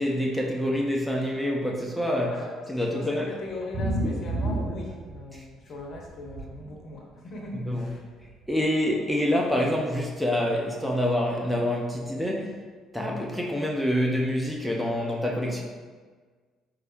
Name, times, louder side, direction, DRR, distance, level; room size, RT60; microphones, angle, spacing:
voice 1, 0.0-2.4 2.7-3.3 5.3-5.4 7.6-7.9 8.5-12.6 12.9-15.6, left 1 dB, ahead, -2 dB, 0.6 m, -26 dB
voice 2, 2.9-8.0, left 2 dB, 45° left, 0 dB, 0.7 m, -39 dB
sound 1, 3.5-5.5 5.8-6.5 7.5-7.6 7.9-8.0 8.2-8.3, right 1 dB, 55° right, 0.8 m, -29 dB
4.6 x 2.5 x 3.0 m, 1.5 s
figure-of-eight pair, 50°, 0 cm